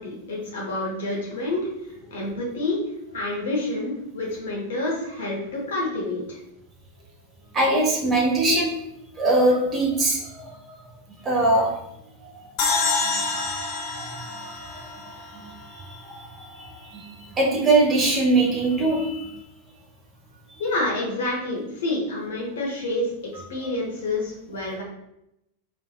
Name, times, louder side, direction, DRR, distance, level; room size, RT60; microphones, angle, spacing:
voice 1, 0.0-2.8 3.1-6.4 20.6-23.1 23.5-24.8, left 2 dB, 60° left, -3 dB, 0.8 m, -28 dB
voice 2, 7.5-8.7 9.2-10.5 11.2-11.7 13.0-14.5 15.9-16.3 16.6-19.3, right 2 dB, 25° right, -1 dB, 0.6 m, -22 dB
sound 1, 12.6-15.9, left 4 dB, 45° left, 0.4 m, -27 dB
2.6 x 2.4 x 2.3 m, 0.83 s
figure-of-eight pair, 90°, 0 cm